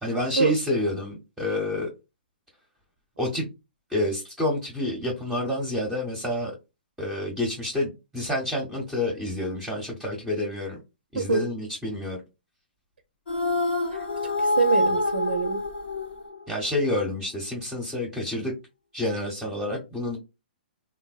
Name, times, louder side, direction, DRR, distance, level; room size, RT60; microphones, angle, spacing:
voice 1, 0.0-1.9 3.2-3.5 3.9-6.5 7.0-10.8 11.1-12.2 16.5-18.5 18.9-20.2, left 1 dB, 5° right, 0.8 m, -28 dB
voice 2, 11.1-11.5 13.9-14.0 14.4-15.6, right 4 dB, 90° right, 0.5 m, -25 dB
sound 1, 13.3-16.7, left 2 dB, 85° left, 0.9 m, -26 dB
3.3 x 2.2 x 2.3 m
hypercardioid pair, 140°, 6 cm